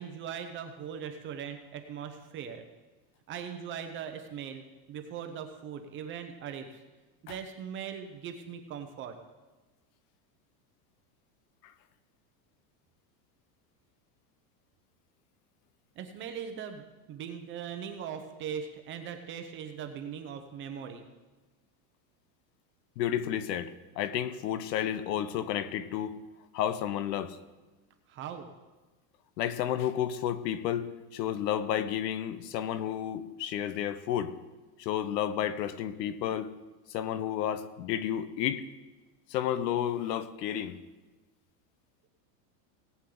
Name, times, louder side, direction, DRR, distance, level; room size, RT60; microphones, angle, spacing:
voice 1, 0.0-2.6 3.3-6.8 7.2-9.2 16.0-21.0 28.1-28.5, right 8 dB, 25° right, 6 dB, 0.7 m, -40 dB
voice 2, 23.0-26.1 26.5-27.4 29.4-34.3 34.8-36.5 36.9-38.6 39.3-40.8, left 10 dB, 90° left, 14 dB, 1.0 m, -31 dB
18.0 x 8.3 x 3.9 m, 1.2 s
supercardioid pair, 160°, 48 cm